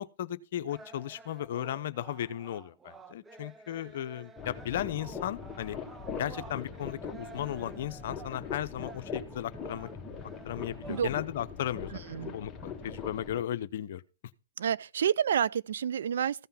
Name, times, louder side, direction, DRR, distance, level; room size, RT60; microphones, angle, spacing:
voice 1, 0.0-5.8 6.2-9.9 10.4-12.0 12.3-14.0, left 11 dB, 55° left, 0.7 m, -35 dB
sound 1, 0.7-11.1, right 3 dB, 10° right, 0.6 m, -51 dB
sound 2, 4.4-13.4, left 5 dB, 15° left, 1.5 m, -41 dB
voice 2, 14.6-16.5, right 8 dB, 65° right, 0.5 m, -29 dB
15.0 x 5.6 x 5.6 m
hypercardioid pair, 125°, 0 cm